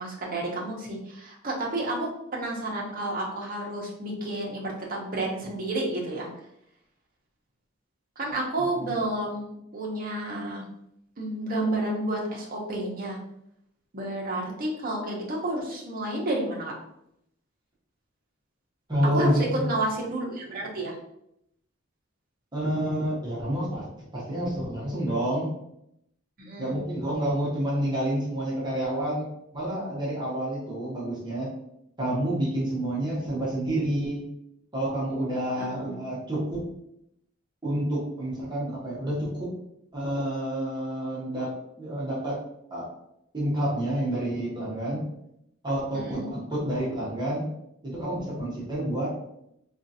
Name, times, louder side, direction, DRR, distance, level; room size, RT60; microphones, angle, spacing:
voice 1, 0.0-6.3 8.2-10.6 11.2-13.2 13.9-16.7 19.1-21.0 26.4-26.8 35.6-35.9 45.9-46.3, right 1 dB, 45° right, -2 dB, 0.8 m, -30 dB
voice 2, 18.9-19.7 22.5-23.8 24.1-25.5 26.6-31.5 32.0-34.2 34.7-36.7 37.6-39.5 39.9-41.5 41.8-42.4 42.7-42.8 43.3-45.0 45.6-47.5 47.8-49.1, right 1 dB, 20° right, -7 dB, 1.0 m, -29 dB
3.7 x 2.5 x 2.7 m, 0.77 s
head